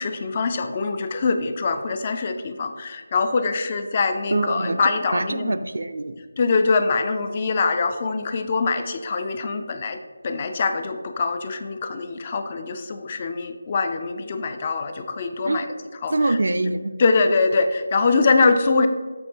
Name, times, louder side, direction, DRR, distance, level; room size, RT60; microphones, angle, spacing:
voice 1, 0.0-5.6 6.4-15.7 16.0-16.4 17.0-18.9, left 4 dB, 30° left, 8 dB, 0.3 m, -23 dB
voice 2, 4.3-4.8 5.1-6.2 15.4-15.7 16.1-16.9, right 2 dB, 65° right, 10 dB, 0.3 m, -24 dB
7.7 x 2.9 x 4.3 m, 1.4 s
figure-of-eight pair, 165°, 0 cm